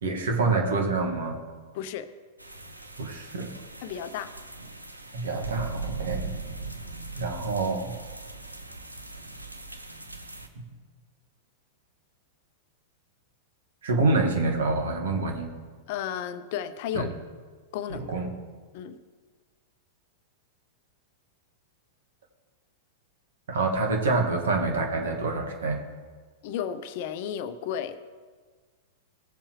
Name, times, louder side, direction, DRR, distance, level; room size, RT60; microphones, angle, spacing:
voice 1, 0.0-1.4 3.0-3.5 5.1-6.3 7.2-7.9 13.8-15.5 16.9-17.1 17.9-18.3 23.5-25.8, right 3 dB, 65° right, 2 dB, 1.9 m, -26 dB
voice 2, 1.7-2.1 3.8-4.3 15.9-17.1 17.7-18.1 18.7-19.0 26.4-28.0, left 9 dB, 50° left, 12 dB, 0.7 m, -33 dB
sound 1, 2.4-10.5, right 3 dB, 90° right, 0.8 m, -39 dB
17.0 x 7.2 x 3.2 m, 1.5 s
figure-of-eight pair, 95°, 0 cm